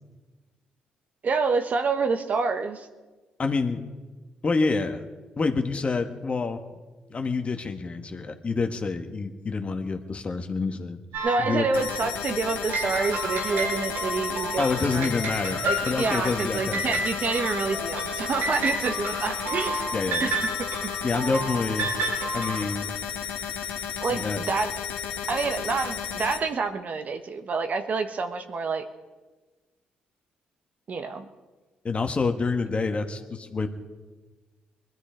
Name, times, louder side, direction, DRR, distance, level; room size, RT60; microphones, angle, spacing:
voice 1, 1.2-2.9 11.2-15.1 15.6-20.3 20.8-20.9 24.0-24.7 25.3-28.8 30.9-31.2, right 4 dB, 50° right, 7 dB, 1.4 m, -28 dB
voice 2, 3.4-3.8 4.4-5.0 5.4-6.6 7.1-11.0 11.4-11.7 14.6-17.0 19.9-20.3 21.0-21.9 22.3-22.9 24.1-24.4 31.8-33.7, left 4 dB, 40° left, 6 dB, 1.7 m, -27 dB
sound 1, 11.1-12.0 12.7-22.6, right 2 dB, 85° right, 6.0 m, -31 dB
sound 2, 11.7-26.4, left 8 dB, 85° left, 1.4 m, -33 dB
21.0 x 13.0 x 5.2 m, 1.3 s
supercardioid pair, 65°, 3 cm